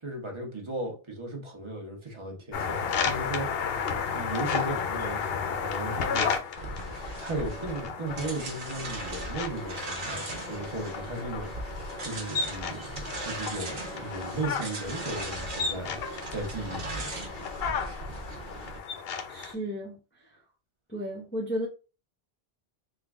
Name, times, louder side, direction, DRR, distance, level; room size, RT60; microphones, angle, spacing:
voice 1, 0.0-3.5 4.1-6.3 7.2-11.7 12.0-16.0 16.3-17.1, right 2 dB, 30° right, 1.0 m, -36 dB
sound 1, 2.5-19.5, left 6 dB, 70° left, 0.8 m, -33 dB
sound 2, 6.6-18.8, right 1 dB, 55° right, 1.0 m, -38 dB
voice 2, 19.3-20.0 20.3-20.4 20.9-21.7, equal, 15° left, 0.6 m, -33 dB
3.7 x 2.3 x 3.5 m
omnidirectional pair, 1.0 m